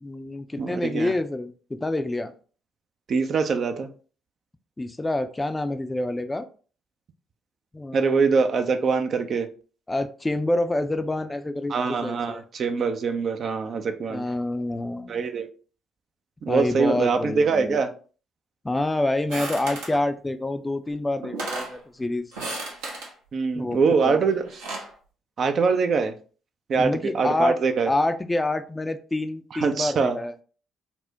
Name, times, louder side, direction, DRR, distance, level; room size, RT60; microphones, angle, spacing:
voice 1, 0.0-2.3 4.8-6.5 7.7-8.2 9.9-12.4 14.1-15.2 16.5-17.8 18.6-22.3 23.5-23.8 24.0-24.2 26.8-27.6 27.9-30.3, left 2 dB, 20° left, 0.4 m, -27 dB
voice 2, 0.6-1.1 3.1-3.9 7.9-9.5 11.7-14.2 15.1-15.5 16.4-17.9 23.3-24.4 25.4-26.1 26.7-27.9 29.6-30.2, right 5 dB, 55° right, 0.4 m, -23 dB
sound 1, 19.3-20.0 20.9-21.0 21.2-21.8 22.3-23.1 24.3-24.9, right 2 dB, 80° right, 0.8 m, -33 dB
4.2 x 2.1 x 2.7 m
hypercardioid pair, 45°, 0 cm